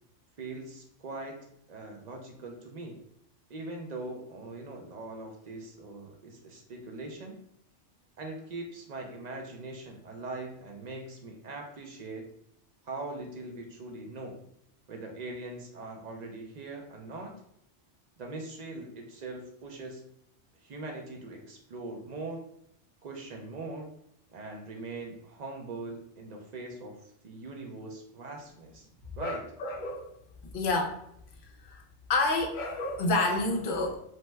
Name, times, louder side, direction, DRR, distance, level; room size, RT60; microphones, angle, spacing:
voice 1, 0.4-1.4 1.7-3.0 3.5-7.4 8.2-12.3 12.8-14.4 14.9-17.3 18.2-20.0 20.6-22.4 23.0-23.9 24.3-28.9 29.2-29.4, right 2 dB, 60° right, 1 dB, 0.4 m, -41 dB
voice 2, 29.2-30.2 30.5-31.0 31.6-31.8 32.1-34.0, left 2 dB, 55° left, 2 dB, 0.6 m, -29 dB
2.8 x 2.1 x 3.1 m, 0.70 s
omnidirectional pair, 1.2 m